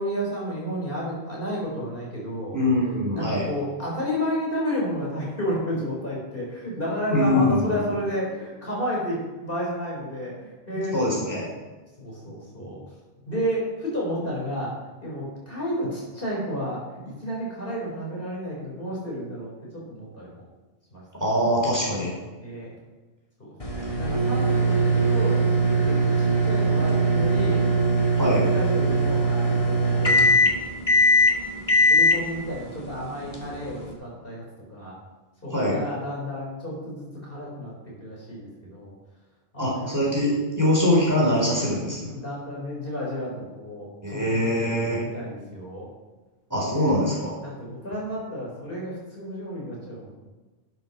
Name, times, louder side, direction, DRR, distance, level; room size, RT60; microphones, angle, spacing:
voice 1, 0.0-2.6 3.1-11.5 12.0-12.8 13.3-14.7 15.0-20.4 20.9-21.0 22.4-22.7 23.4-25.4 25.8-27.6 28.4-30.0 31.9-34.4 34.7-35.0 35.4-37.7 38.0-38.9 39.5-39.9 42.0-45.9 46.6-46.9 47.4-50.1, equal, 55° left, -4 dB, 4.6 m, -31 dB
voice 2, 2.5-3.5 7.1-7.8 10.9-11.5 21.2-22.1 28.2-28.4 35.5-35.8 39.6-42.1 44.0-45.0 46.5-47.3, left 1 dB, 15° right, -5 dB, 4.0 m, -23 dB
sound 1, 23.6-33.9, right 1 dB, 35° left, 1.9 m, -21 dB
12.0 x 7.9 x 6.1 m, 1.2 s
omnidirectional pair, 1.1 m